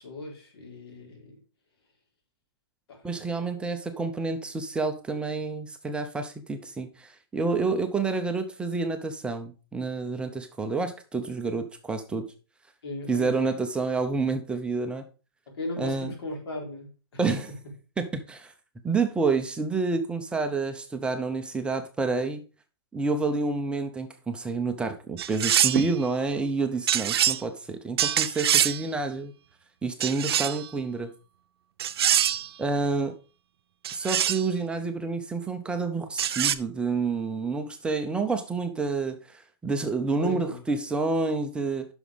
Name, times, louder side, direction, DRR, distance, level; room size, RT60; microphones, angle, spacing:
voice 1, 0.0-1.4 2.9-3.7 12.8-13.6 15.5-17.7 40.1-40.6, left 2 dB, 85° left, 4.2 m, -38 dB
voice 2, 3.0-12.3 13.1-15.0 15.8-16.1 17.2-17.4 18.0-18.5 18.8-22.4 22.9-29.3 29.8-31.1 32.6-33.2 33.9-41.9, right 4 dB, 10° right, 0.6 m, -29 dB
sound 1, 25.2-25.9 26.9-27.4 28.0-28.8 30.0-30.7 31.8-32.5 33.8-34.5 36.2-36.6, right 10 dB, 80° right, 0.6 m, -24 dB
9.9 x 6.2 x 3.6 m
hypercardioid pair, 155°, 13 cm